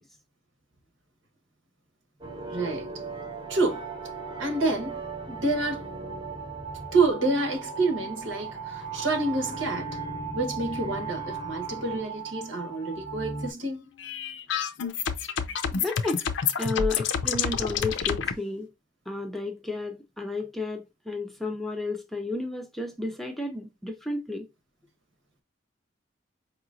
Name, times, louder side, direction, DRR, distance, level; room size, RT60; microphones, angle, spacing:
sound 1, 2.2-13.5, right 4 dB, 25° right, 0.9 m, -37 dB
voice 1, 2.5-2.9 3.5-3.8 4.4-5.0 5.3-5.8 6.9-9.9 10.3-13.8, right 3 dB, 75° right, 1.2 m, -28 dB
sound 2, 14.0-18.3, left 6 dB, 65° left, 0.5 m, -28 dB
voice 2, 15.7-16.2 16.6-18.7 19.1-24.5, left 2 dB, ahead, 0.5 m, -32 dB
4.9 x 2.9 x 2.4 m
head